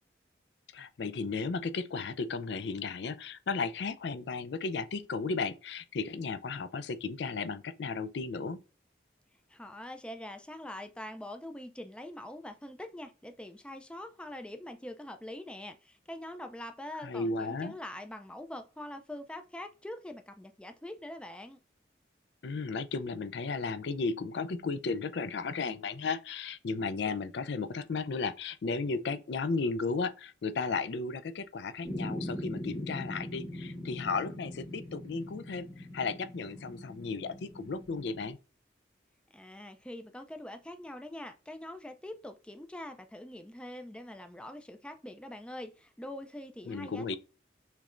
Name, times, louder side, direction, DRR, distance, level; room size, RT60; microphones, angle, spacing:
voice 1, 0.7-8.6 17.0-17.7 22.4-38.4 46.7-47.2, left 4 dB, 70° left, 0.4 m, -34 dB
voice 2, 9.5-21.6 39.3-47.2, left 1 dB, 5° left, 0.3 m, -44 dB
sound 1, 31.8-38.3, left 1 dB, 25° left, 1.1 m, -41 dB
6.5 x 3.2 x 2.5 m
head